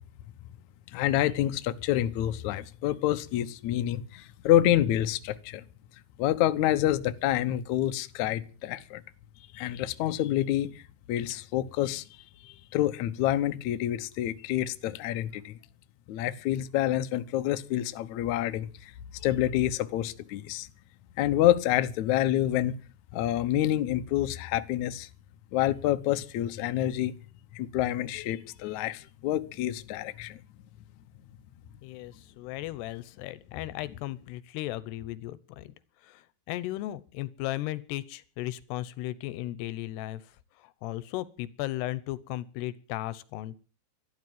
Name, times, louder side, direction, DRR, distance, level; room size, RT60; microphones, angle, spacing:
voice 1, 0.9-5.6 6.2-9.0 9.5-10.8 11.1-12.0 12.4-15.6 16.1-18.9 19.2-20.7 21.2-22.7 23.1-25.1 25.5-27.1 27.5-30.4, left 13 dB, 75° left, 1.8 m, -27 dB
voice 2, 31.8-35.7 36.0-40.2 40.8-43.6, left 16 dB, 90° left, 3.0 m, -36 dB
12.5 x 12.5 x 9.2 m
omnidirectional pair, 4.7 m